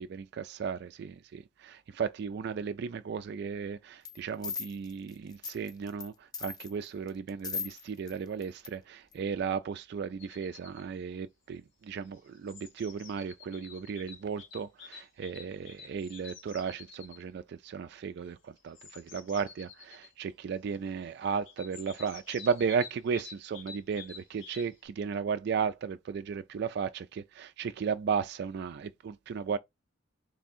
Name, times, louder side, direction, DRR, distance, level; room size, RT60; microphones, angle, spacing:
voice 1, 0.0-29.6, right 6 dB, 55° right, 0.3 m, -35 dB
sound 1, 4.0-4.2 4.4-6.1 6.3-8.1 8.4-8.7 9.1-9.2, left 6 dB, 20° left, 0.5 m, -38 dB
sound 2, 10.2-10.9 11.9-17.2 18.6-20.1 21.5-24.9, left 6 dB, 80° left, 1.0 m, -50 dB
3.6 x 3.3 x 4.2 m
head